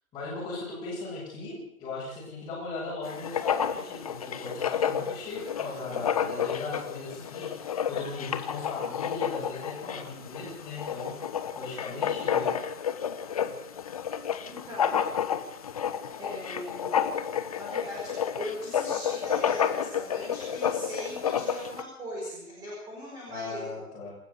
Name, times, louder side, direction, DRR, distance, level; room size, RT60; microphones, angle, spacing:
voice 1, 0.1-11.1 11.6-12.5 23.3-24.1, left 3 dB, 10° left, -9 dB, 6.2 m, -38 dB
Writing, 3.1-21.8, left 8 dB, 25° left, 1.0 m, -31 dB
voice 2, 14.4-15.0 16.2-17.1 17.5-23.6, equal, 10° right, -4 dB, 5.1 m, -40 dB
27.5 x 13.0 x 8.1 m, 0.76 s
hypercardioid pair, 165°, 45 cm